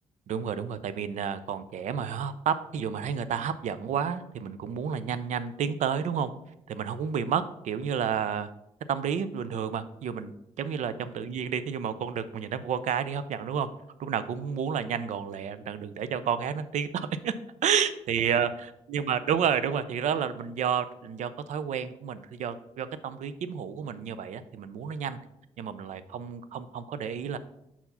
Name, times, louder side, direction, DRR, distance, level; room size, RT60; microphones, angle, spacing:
voice 1, 0.3-6.3 6.7-8.5 8.9-13.7 14.0-17.3 17.6-18.5 18.9-25.2 25.6-27.4, right 7 dB, 70° right, 13 dB, 0.5 m, -30 dB
5.7 x 4.6 x 5.5 m, 0.84 s
cardioid pair, 70°, 13 cm